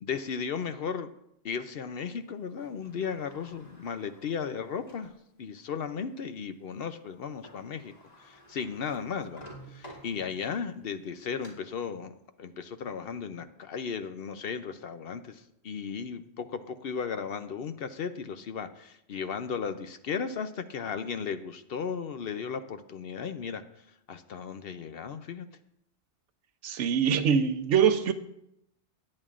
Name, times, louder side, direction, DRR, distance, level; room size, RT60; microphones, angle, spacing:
voice 1, 0.0-1.1 1.4-5.1 5.4-23.6 24.1-25.5, left 6 dB, 60° left, 0.8 m, -35 dB
Sliding door, 2.6-5.2 5.8-5.9 7.2-7.3 7.4-10.6 11.1-11.5, right 1 dB, 35° left, 2.4 m, -52 dB
voice 2, 26.6-28.1, right 7 dB, 80° right, 1.0 m, -24 dB
20.0 x 8.6 x 2.5 m
omnidirectional pair, 1.2 m